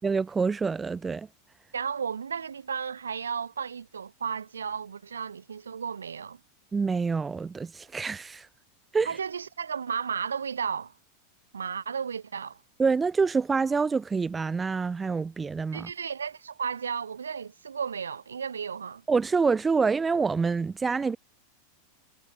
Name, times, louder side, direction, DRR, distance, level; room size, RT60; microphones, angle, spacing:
voice 1, 0.0-1.3 6.7-8.5 8.9-9.1 12.8-15.9 19.1-21.2, right 5 dB, 15° right, 1.3 m, -26 dB
voice 2, 1.7-6.4 9.1-10.9 11.5-12.6 15.7-19.0, right 6 dB, 75° right, 3.9 m, -34 dB
figure-of-eight pair, 90°, 0 cm